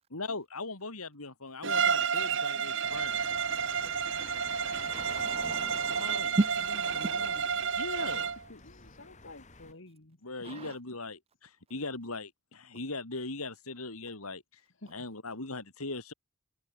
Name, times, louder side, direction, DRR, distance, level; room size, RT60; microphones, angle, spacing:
voice 1, 0.1-3.2 5.9-6.3 7.8-8.3 10.2-14.6 14.9-16.1, left 3 dB, 85° left, 3.7 m, -39 dB
Bowed string instrument, 1.6-8.4, right 7 dB, 60° right, 1.4 m, -31 dB
sound 1, 2.8-9.7, left 3 dB, 35° left, 2.8 m, -49 dB
voice 2, 4.9-7.4 8.0-8.3 10.4-10.7, right 2 dB, 25° right, 0.5 m, -35 dB
voice 3, 6.7-7.5 8.5-10.2 14.8-14.9, left 2 dB, 60° left, 1.9 m, -50 dB
head